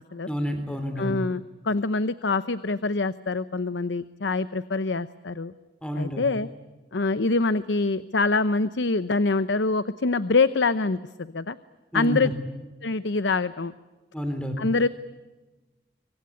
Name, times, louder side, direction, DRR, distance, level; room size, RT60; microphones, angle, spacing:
voice 1, 0.3-1.2 5.8-6.2 11.9-12.3 14.1-14.6, equal, 5° left, 7 dB, 3.8 m, -29 dB
voice 2, 1.0-5.5 6.0-6.5 6.9-11.6 11.9-12.3 12.8-13.7 14.6-14.9, left 3 dB, 85° left, 14 dB, 0.8 m, -25 dB
26.0 x 25.0 x 8.4 m, 1.2 s
head